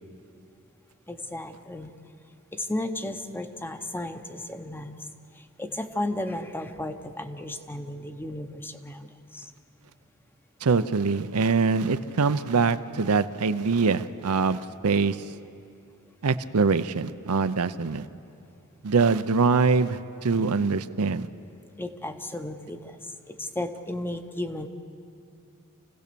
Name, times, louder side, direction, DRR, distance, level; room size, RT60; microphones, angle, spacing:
voice 1, 1.1-1.9 2.5-5.0 5.3-9.5 21.8-24.7, left 1 dB, 10° left, 8 dB, 0.8 m, -34 dB
voice 2, 10.6-15.2 16.2-18.1 18.8-21.3, right 4 dB, 80° right, 12 dB, 0.6 m, -23 dB
26.5 x 16.5 x 6.9 m, 2.6 s
head